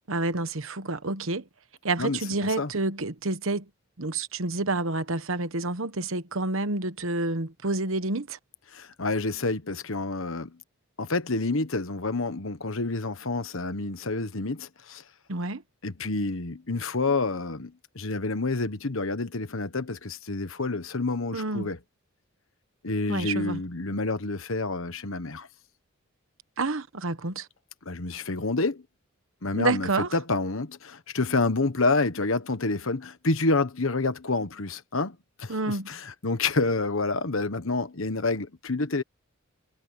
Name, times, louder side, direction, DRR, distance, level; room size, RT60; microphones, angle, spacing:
voice 1, 0.1-1.4 1.8-3.7 4.0-8.4 15.3-15.6 21.3-21.7 23.1-23.6 26.6-27.5 29.6-30.1 35.5-35.9, right 2 dB, 65° right, 1.2 m, -29 dB
voice 2, 8.7-10.6 11.0-15.0 15.8-21.8 22.8-25.5 27.8-28.8 29.4-39.0, left 3 dB, 65° left, 1.3 m, -28 dB
head